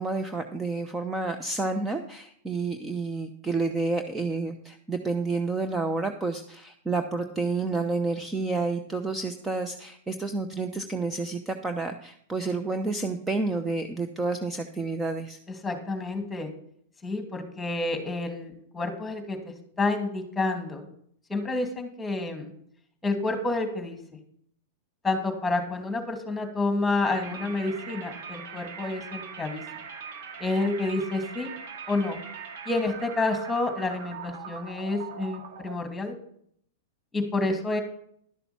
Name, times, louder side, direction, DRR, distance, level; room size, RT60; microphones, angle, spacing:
voice 1, 0.0-15.4, right 3 dB, 10° right, 7 dB, 0.8 m, -30 dB
voice 2, 15.5-16.5 17.0-20.9 21.3-22.5 23.0-24.0 25.0-29.6 30.4-31.5 31.9-32.2 32.7-36.1 37.1-37.8, left 2 dB, 10° left, 5 dB, 2.4 m, -29 dB
sound 1, 27.0-35.8, right 6 dB, 65° right, 1.9 m, -41 dB
12.0 x 6.8 x 5.9 m, 0.66 s
hypercardioid pair, 125°, 0 cm